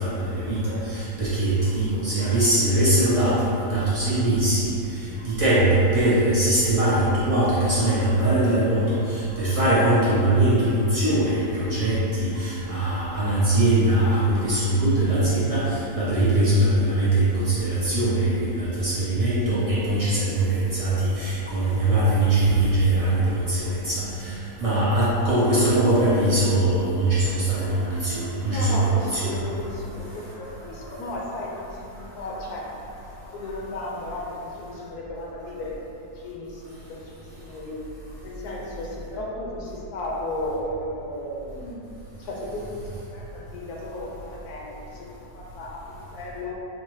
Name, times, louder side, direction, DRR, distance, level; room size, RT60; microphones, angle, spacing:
voice 1, 0.0-29.3 29.8-30.0 30.8-30.9, right 1 dB, 40° right, -11 dB, 0.5 m, -22 dB
voice 2, 23.8-24.6 28.5-35.9 36.1-41.9 42.2-45.1 45.3-46.6, left 1 dB, 75° left, -3 dB, 1.1 m, -35 dB
4.6 x 2.1 x 3.0 m, 2.7 s
omnidirectional pair, 1.7 m